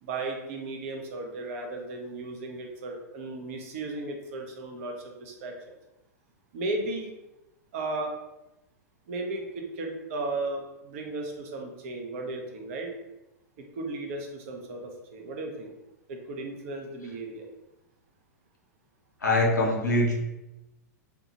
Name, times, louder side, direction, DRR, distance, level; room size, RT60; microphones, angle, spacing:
voice 1, 0.0-5.5 6.5-7.1 7.7-8.1 9.1-12.9 13.6-15.7 16.1-17.5, right 2 dB, 50° right, 2 dB, 0.6 m, -35 dB
voice 2, 19.2-20.1, left 1 dB, 85° left, -1 dB, 0.6 m, -23 dB
2.7 x 2.3 x 2.8 m, 0.96 s
figure-of-eight pair, 100°, 9 cm